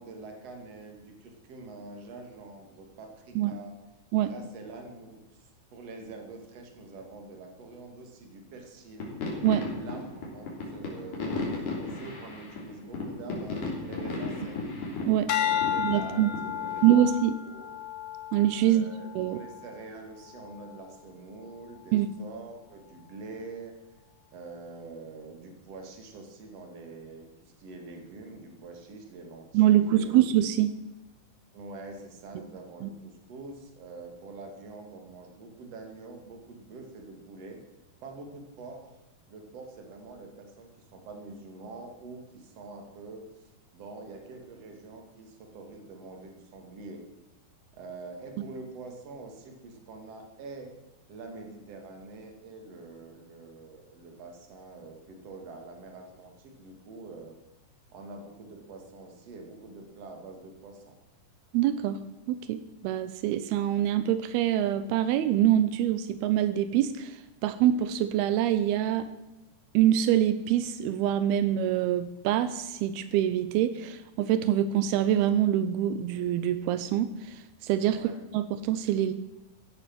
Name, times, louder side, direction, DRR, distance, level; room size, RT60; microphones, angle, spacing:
voice 1, 0.0-3.7 4.2-9.1 9.8-14.6 15.3-17.7 18.6-23.7 24.3-30.2 31.5-37.6 38.0-39.0 39.3-47.0 47.8-50.7 51.1-57.4 57.9-60.9 77.9-78.2, right 3 dB, 45° right, 3 dB, 3.1 m, -45 dB
sound 1, 9.0-16.8, left 3 dB, 55° left, 4.7 m, -35 dB
sound 2, 15.3-19.7 20.3-20.7, left 10 dB, 75° left, 1.4 m, -33 dB
voice 2, 15.8-16.3 16.8-17.3 18.3-18.9 19.2-19.4 21.9-22.1 29.5-30.7 32.8-32.9 61.5-62.0 62.3-69.1 69.7-78.0 78.3-79.1, right 11 dB, 85° right, 13 dB, 2.7 m, -25 dB
15.5 x 11.5 x 6.1 m, 1.0 s
omnidirectional pair, 4.4 m